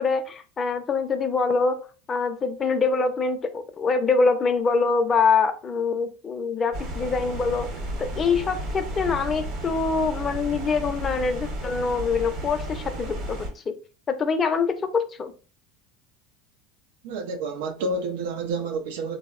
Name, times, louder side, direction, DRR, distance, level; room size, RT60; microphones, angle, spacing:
voice 1, 0.0-7.7 8.0-13.7 14.1-15.3, left 4 dB, 25° left, 0.4 m, -24 dB
sound 1, 6.7-13.5, right 1 dB, 45° right, 0.9 m, -33 dB
voice 2, 17.0-19.2, right 3 dB, 85° right, 0.4 m, -29 dB
3.4 x 2.0 x 2.3 m
supercardioid pair, 125°, 0 cm